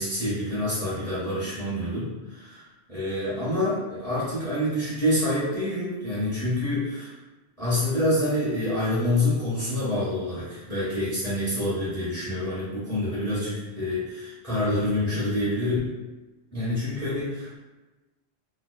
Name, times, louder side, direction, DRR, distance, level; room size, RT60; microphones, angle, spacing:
voice 1, 0.0-7.1 7.6-15.8 16.5-17.6, left 1 dB, 15° right, -12 dB, 1.0 m, -27 dB
2.4 x 2.3 x 2.3 m, 1.1 s
omnidirectional pair, 1.1 m